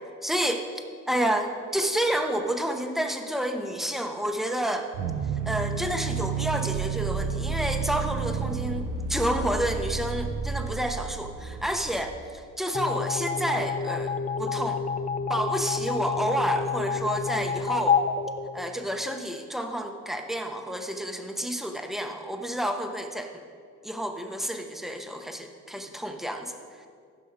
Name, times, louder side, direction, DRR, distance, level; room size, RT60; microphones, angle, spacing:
voice 1, 0.2-0.6 1.1-4.9 5.5-14.8 15.3-18.0 18.5-23.3 23.8-26.6, right 1 dB, ahead, 4 dB, 1.0 m, -29 dB
sound 1, 4.9-12.2, right 5 dB, 75° right, 0.9 m, -31 dB
sound 2, 12.7-19.2, left 5 dB, 25° left, 0.5 m, -29 dB
15.5 x 6.2 x 4.8 m, 2.1 s
cardioid pair, 90°, 30 cm